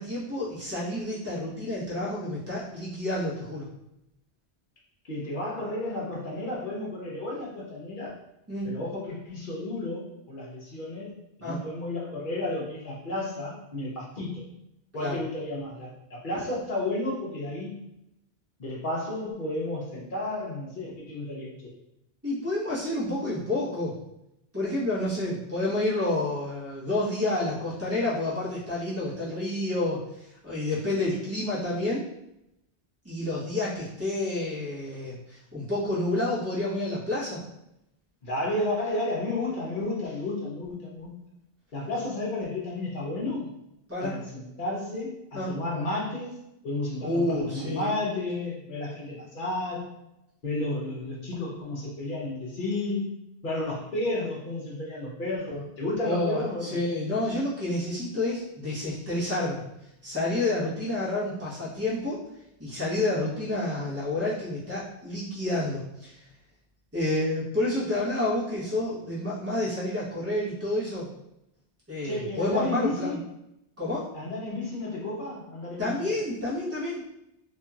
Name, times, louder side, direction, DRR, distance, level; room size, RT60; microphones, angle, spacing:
voice 1, 0.0-3.7 8.5-8.7 11.4-11.6 15.0-15.2 22.2-24.0 24.5-32.1 33.0-37.4 43.9-44.2 45.3-45.6 47.0-47.9 56.0-59.6 60.0-62.2 62.6-66.2 66.9-71.1 71.9-73.2 73.8-74.1 75.8-77.0, left 2 dB, 15° right, -8 dB, 1.0 m, -29 dB
voice 2, 5.0-8.1 8.6-11.1 11.4-14.4 14.9-17.7 18.6-21.5 38.2-41.1 41.7-43.5 44.0-46.4 46.6-49.9 50.4-53.1 53.4-56.8 72.0-73.2 74.1-76.1, left 2 dB, 50° left, -3 dB, 0.9 m, -32 dB
2.9 x 2.7 x 2.4 m, 0.84 s
omnidirectional pair, 1.1 m